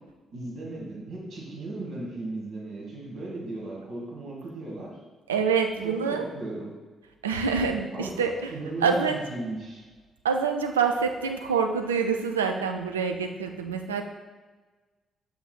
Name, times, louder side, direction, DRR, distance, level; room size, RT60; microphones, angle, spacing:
voice 1, 0.3-5.0 5.8-6.8 7.9-8.1 8.5-9.8, right 2 dB, 50° right, -3 dB, 1.4 m, -36 dB
voice 2, 5.3-6.3 7.2-8.5 8.8-9.2 10.2-14.0, right 5 dB, 80° right, 5 dB, 0.4 m, -26 dB
8.4 x 7.2 x 2.2 m, 1.3 s
figure-of-eight pair, 40°, 0 cm